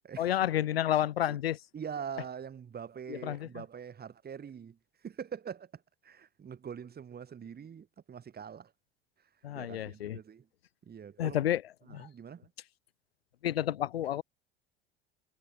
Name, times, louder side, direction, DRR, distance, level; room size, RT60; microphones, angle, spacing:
voice 1, 0.2-1.6 3.1-3.5 9.4-10.2 11.2-11.6 11.9-12.1 13.4-14.2, left 11 dB, 80° left, 0.9 m, -30 dB
voice 2, 1.7-8.7 9.5-10.5 10.8-11.4 11.9-12.5, right 7 dB, 30° right, 6.8 m, -44 dB
figure-of-eight pair, 70°, 30 cm